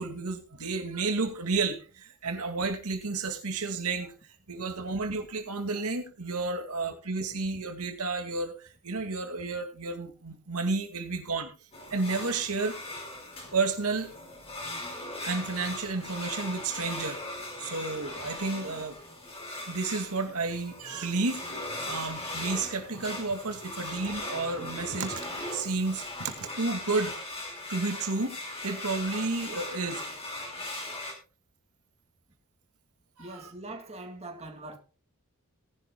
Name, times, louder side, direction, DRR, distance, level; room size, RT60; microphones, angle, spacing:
voice 1, 0.0-4.1 4.5-11.5 11.9-12.8 13.5-14.1 15.2-17.2 17.6-19.0 19.7-25.3 25.5-27.2 27.7-28.3 28.6-30.0 33.2-33.4, right 3 dB, 80° right, 2.1 m, -31 dB
sound 1, 11.7-31.1, left 2 dB, 25° left, 4.0 m, -39 dB
voice 2, 33.2-34.8, right 2 dB, 30° right, 2.0 m, -42 dB
18.5 x 11.5 x 2.3 m
head